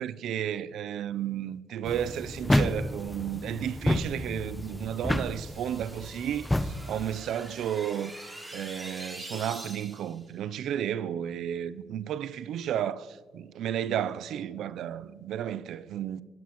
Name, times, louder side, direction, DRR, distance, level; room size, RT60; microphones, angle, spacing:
voice 1, 0.0-16.2, right 10 dB, 75° right, 0.5 m, -33 dB
sound 1, 1.9-7.2, left 1 dB, 10° left, 0.6 m, -30 dB
sound 2, 4.2-10.2, right 1 dB, 15° right, 3.0 m, -45 dB
16.5 x 10.5 x 3.0 m
cardioid pair, 90°, 0 cm